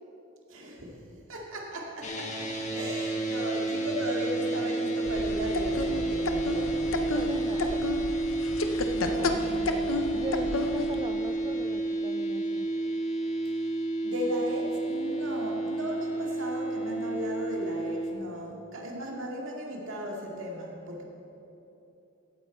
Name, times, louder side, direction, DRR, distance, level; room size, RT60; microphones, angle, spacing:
voice 1, 0.5-0.9 1.3-7.1 8.9-9.4 14.0-21.0, equal, 70° right, -1 dB, 2.1 m, -36 dB
sound 1, 2.0-18.1, right 2 dB, 35° left, 1.4 m, -30 dB
voice 2, 2.7-3.4 7.1-7.8 9.0-12.7, right 2 dB, 25° right, 6 dB, 0.4 m, -40 dB
sound 2, 5.1-11.0, left 3 dB, 75° left, 0.7 m, -32 dB
15.5 x 8.9 x 4.4 m, 2.9 s
head